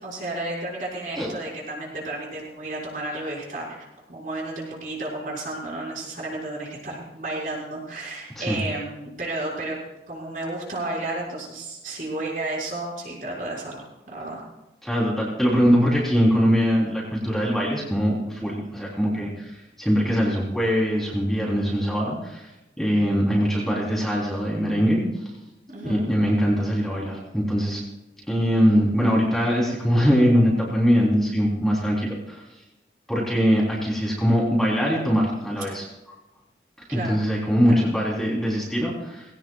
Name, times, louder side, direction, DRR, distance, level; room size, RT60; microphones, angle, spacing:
voice 1, 0.0-9.8 10.1-14.4 25.7-26.1 36.9-37.1 37.7-37.8, right 2 dB, 50° right, -4 dB, 5.9 m, -32 dB
voice 2, 14.8-22.5 22.8-25.0 25.8-27.8 28.3-32.4 33.1-35.8 36.9-39.2, equal, ahead, -5 dB, 3.6 m, -22 dB
20.0 x 18.0 x 2.4 m, 0.97 s
head